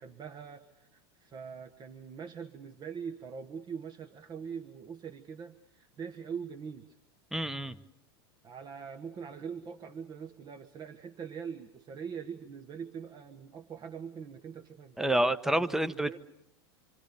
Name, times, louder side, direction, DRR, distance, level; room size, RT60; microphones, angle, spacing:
voice 1, 0.0-7.0 8.4-15.2 15.5-16.2, right 6 dB, 30° right, 7 dB, 1.4 m, -43 dB
voice 2, 7.3-7.7 15.0-16.2, right 1 dB, 5° right, 13 dB, 1.1 m, -28 dB
27.0 x 26.0 x 6.9 m, 0.88 s
hypercardioid pair, 95°, 13 cm